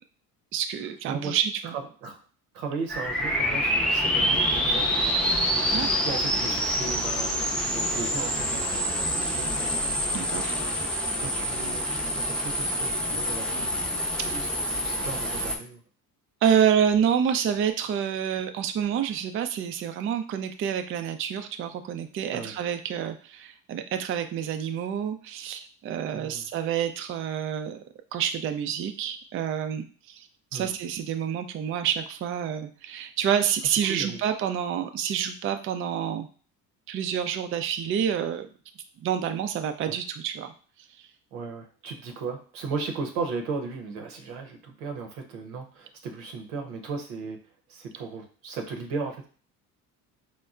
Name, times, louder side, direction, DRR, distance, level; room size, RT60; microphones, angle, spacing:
voice 1, 0.5-1.8 5.7-5.9 10.1-10.5 16.4-27.8 28.1-36.3 36.9-38.5 39.0-40.5, right 8 dB, 30° right, 8 dB, 0.4 m, -28 dB
voice 2, 1.1-1.4 2.0-2.2 2.5-5.3 5.7-9.8 10.3-10.5 11.2-13.7 14.2-15.8 22.3-22.5 26.1-26.5 30.5-30.7 33.6-34.2 39.9-40.0 41.3-47.4 47.7-49.3, right 4 dB, 85° right, 3 dB, 0.8 m, -36 dB
sound 1, 2.9-15.6, equal, ahead, 0.6 m, -27 dB
4.2 x 2.2 x 2.4 m, 0.40 s
supercardioid pair, 70°, 42 cm